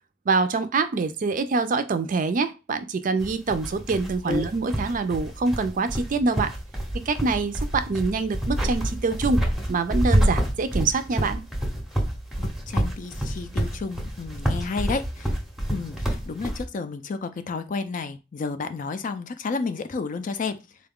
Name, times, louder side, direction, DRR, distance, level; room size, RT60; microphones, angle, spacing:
voice 1, 0.3-6.5 7.1-9.4 9.7-11.4, right 4 dB, 45° right, 10 dB, 0.4 m, -25 dB
sound 1, 3.2-16.6, equal, ahead, 0.7 m, -28 dB
voice 2, 12.4-15.3 15.7-20.6, left 4 dB, 45° left, 10 dB, 0.4 m, -31 dB
3.8 x 2.3 x 3.5 m, 0.27 s
head